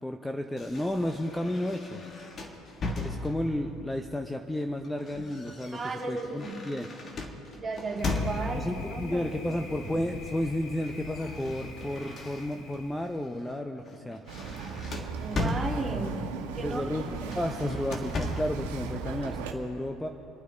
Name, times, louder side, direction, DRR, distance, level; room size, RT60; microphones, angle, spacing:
voice 1, 0.0-2.0 2.9-6.9 8.6-14.2 16.6-20.1, left 1 dB, 10° left, 5 dB, 0.7 m, -32 dB
sound 1, 0.6-3.7 4.6-8.8 9.8-10.2 10.5-12.8 13.3-13.5 13.9-16.2 17.2-18.7, left 2 dB, 40° left, 1.7 m, -37 dB
voice 2, 5.7-6.5 7.6-9.3 15.2-16.2 16.5-16.8 17.1-17.3, right 3 dB, 25° right, -1 dB, 2.5 m, -34 dB
Thunder, 8.0-13.3, left 3 dB, 70° left, 2.0 m, -44 dB
Bird vocalization bird call bird song, 14.3-19.5, right 6 dB, 80° right, 1.2 m, -37 dB
27.5 x 9.3 x 4.0 m, 2.8 s
hypercardioid pair, 70°, 0 cm